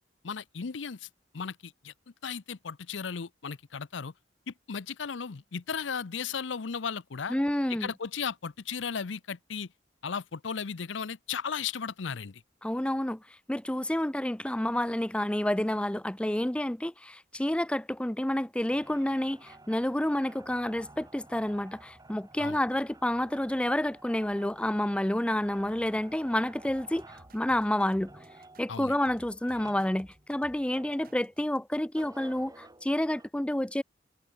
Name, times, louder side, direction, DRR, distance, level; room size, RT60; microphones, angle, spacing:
voice 1, 0.2-1.1 1.3-1.9 2.2-4.1 4.5-7.3 7.7-9.7 10.0-12.4 22.4-22.6 28.7-29.0, left 6 dB, 80° left, 0.7 m, -35 dB
voice 2, 7.3-7.9 12.6-13.2 13.5-28.1 28.6-33.8, left 1 dB, 5° left, 0.5 m, -29 dB
sound 1, 18.7-31.5 31.9-33.3, right 2 dB, 20° right, 3.2 m, -53 dB
sound 2, 26.7-31.6, right 1 dB, 55° right, 5.2 m, -57 dB
head